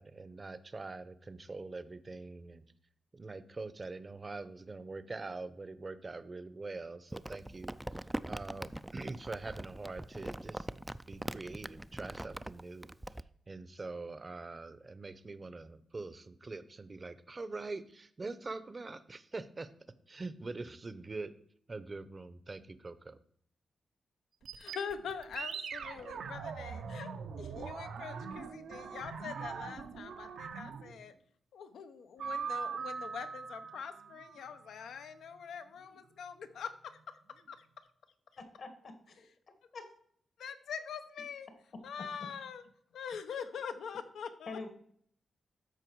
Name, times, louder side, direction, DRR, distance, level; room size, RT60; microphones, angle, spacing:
voice 1, 0.0-2.6 3.1-7.8 8.3-13.0 13.5-19.7 20.1-21.3 21.7-23.2, right 3 dB, 35° right, 14 dB, 0.7 m, -44 dB
Crumpling crinkling, 7.1-13.2, right 1 dB, 10° right, 0.3 m, -42 dB
sound 1, 24.4-31.0 32.2-34.8, right 6 dB, 80° right, 0.7 m, -42 dB
voice 2, 24.6-27.1 27.4-31.1 31.5-37.7 40.4-41.5 41.8-42.6 42.9-44.6, left 7 dB, 85° left, 10 dB, 0.8 m, -44 dB
voice 3, 38.4-39.2 39.7-39.9 44.5-44.7, left 3 dB, 60° left, 7 dB, 1.6 m, -45 dB
13.0 x 4.5 x 4.6 m, 0.64 s
cardioid pair, 85°, 0 cm